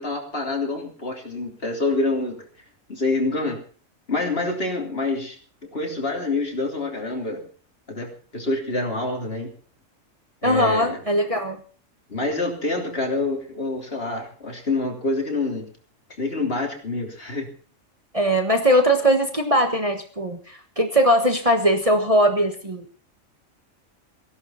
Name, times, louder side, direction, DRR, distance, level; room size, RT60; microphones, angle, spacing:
voice 1, 0.0-2.4 2.9-3.6 4.1-5.4 5.7-7.4 7.9-8.1 8.3-9.5 10.4-11.0 12.1-15.7 16.2-17.5, left 2 dB, 50° left, 1 dB, 3.6 m, -26 dB
voice 2, 10.4-11.6 18.1-22.8, equal, 25° right, 4 dB, 1.5 m, -20 dB
16.5 x 11.0 x 5.7 m, 0.42 s
omnidirectional pair, 1.4 m